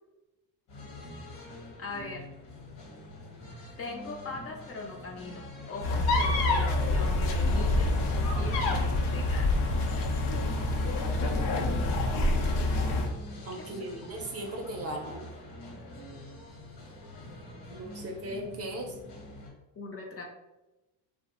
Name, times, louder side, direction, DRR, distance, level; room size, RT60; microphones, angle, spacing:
sound 1, 0.7-19.5, left 1 dB, 65° left, 1.0 m, -46 dB
voice 1, 1.8-2.3 3.8-7.9 8.3-9.6 13.6-14.1 19.8-20.2, left 3 dB, 35° left, 0 dB, 0.5 m, -41 dB
sound 2, 5.8-13.1, left 2 dB, 85° left, 0.6 m, -26 dB
voice 2, 13.5-15.3 17.7-18.9, right 1 dB, 35° right, 1 dB, 0.6 m, -37 dB
2.7 x 2.1 x 2.9 m, 1.0 s
supercardioid pair, 80°, 45 cm